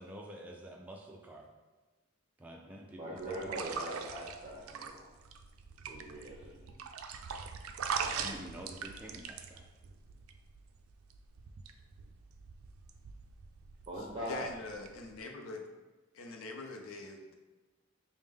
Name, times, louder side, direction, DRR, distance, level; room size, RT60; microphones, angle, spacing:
voice 1, 0.0-1.5 2.4-3.5 8.2-9.6, equal, 10° right, -1 dB, 0.3 m, -48 dB
voice 2, 2.9-5.0 5.9-6.8 13.9-14.5, right 1 dB, 25° right, -5 dB, 0.7 m, -41 dB
sound 1, 3.2-15.2, right 6 dB, 90° right, 0.3 m, -42 dB
voice 3, 14.0-15.6 16.1-17.3, left 3 dB, 85° left, 3 dB, 0.5 m, -44 dB
5.1 x 2.1 x 3.5 m, 1.2 s
head